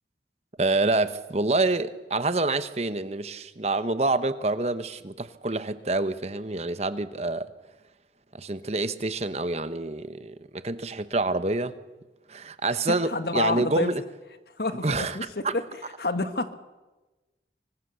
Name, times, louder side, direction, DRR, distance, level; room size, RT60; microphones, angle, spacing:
voice 1, 0.6-7.5 8.3-11.7 12.3-14.0 14.8-15.5, right 2 dB, 35° right, 1.0 m, -27 dB
voice 2, 12.9-13.9 14.6-15.6 16.0-16.5, left 2 dB, 60° left, 1.7 m, -28 dB
26.0 x 24.5 x 6.9 m
head